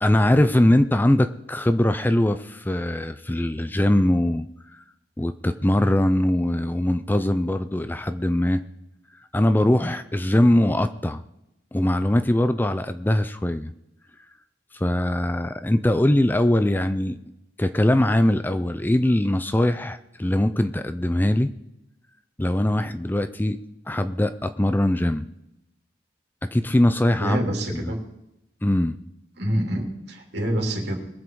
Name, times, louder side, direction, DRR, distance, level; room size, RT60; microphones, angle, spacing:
voice 1, 0.0-4.5 4.7-4.8 5.2-8.6 9.3-11.2 11.7-13.7 14.7-17.2 17.6-21.5 22.4-23.6 23.9-25.3 26.5-27.5 27.7-27.9 28.6-29.0, left 1 dB, 10° left, 10 dB, 0.4 m, -21 dB
voice 2, 27.2-28.0 29.4-31.0, right 1 dB, 65° right, 0 dB, 3.1 m, -26 dB
21.5 x 7.4 x 4.7 m, 0.88 s
head